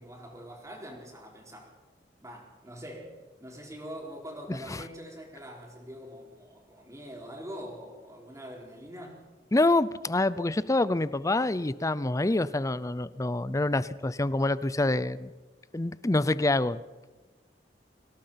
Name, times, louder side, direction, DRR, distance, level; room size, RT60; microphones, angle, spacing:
voice 1, 0.0-1.7 2.2-9.2, equal, 20° right, 0 dB, 4.7 m, -44 dB
voice 2, 9.5-15.3 15.7-16.8, left 2 dB, 20° left, 17 dB, 0.6 m, -26 dB
25.0 x 17.5 x 5.8 m, 1.2 s
head